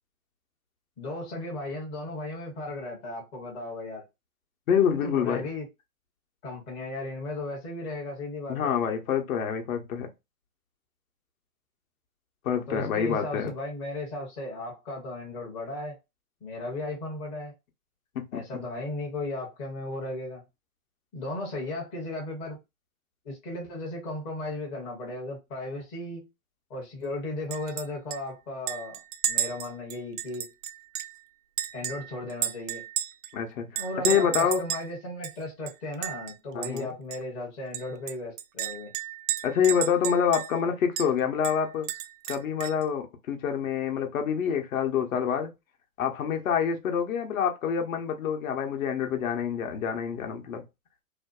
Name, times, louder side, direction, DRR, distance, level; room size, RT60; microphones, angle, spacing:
voice 1, 1.0-4.0 4.9-5.7 6.4-8.7 12.5-16.0 16.4-17.5 18.3-20.4 21.1-22.6 23.2-26.3 26.7-29.0 29.3-30.5 31.7-32.8 33.8-38.9, left 2 dB, 15° left, 0.5 m, -36 dB
voice 2, 4.7-5.5 8.5-10.1 12.4-13.5 18.1-18.4 33.3-34.6 36.5-36.9 39.4-41.9 42.3-45.5 46.0-50.6, left 7 dB, 65° left, 0.8 m, -27 dB
Chink clink, 27.5-27.9 28.1-28.2 28.7-31.2 31.6-33.3 33.8-34.9 35.2-35.3 35.7-36.3 36.6-36.8 37.1-37.2 37.7-40.6 41.0-41.1 41.4-42.8, right 11 dB, 65° right, 0.5 m, -32 dB
2.5 x 2.2 x 2.2 m
hypercardioid pair, 135°, 44 cm